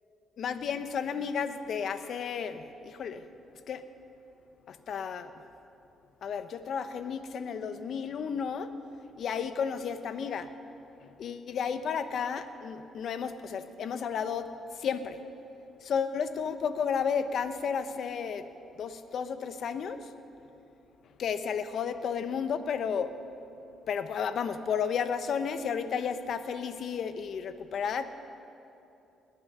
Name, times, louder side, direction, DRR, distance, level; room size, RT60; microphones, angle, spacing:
voice 1, 0.4-3.2 3.7-3.8 4.7-5.3 6.2-8.7 9.2-10.5 11.0-14.5 14.7-15.2 15.8-18.5 18.7-20.1 21.2-23.1 23.9-28.1, left 6 dB, 65° left, 10 dB, 0.9 m, -32 dB
20.0 x 9.7 x 6.7 m, 2.8 s
cardioid pair, 90°, 0 cm